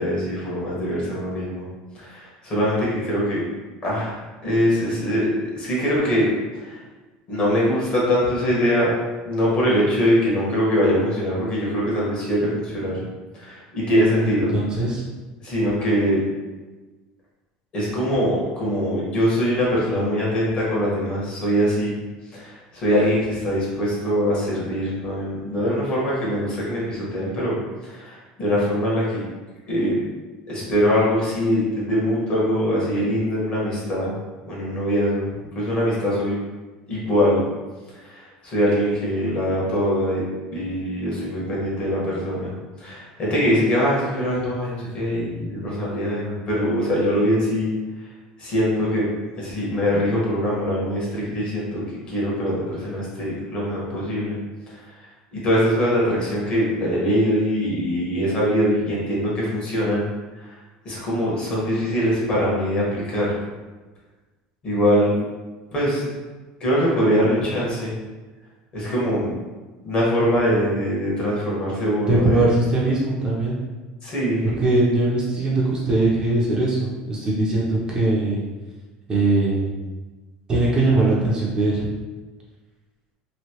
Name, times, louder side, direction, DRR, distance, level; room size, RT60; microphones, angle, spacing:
voice 1, 0.0-1.6 2.0-3.4 3.8-6.3 6.6-6.7 7.3-8.9 9.2-13.0 13.4-14.5 15.4-16.2 17.7-22.0 22.3-27.6 27.8-29.2 29.7-30.0 30.5-34.2 34.4-35.3 35.5-36.4 36.9-37.4 38.1-40.2 40.5-42.5 42.8-47.7 48.4-49.1 49.4-54.4 55.3-60.1 60.8-63.3 64.6-65.1 65.7-66.0 66.6-67.9 68.7-69.3 69.8-72.5 74.0-74.5, equal, 35° left, -6 dB, 1.3 m, -22 dB
voice 2, 14.2-15.0 72.0-73.6 74.4-78.4 79.1-79.7 80.5-81.9, right 2 dB, 25° right, -5 dB, 0.7 m, -21 dB
3.1 x 2.7 x 2.9 m, 1.2 s
cardioid pair, 140°, 3 cm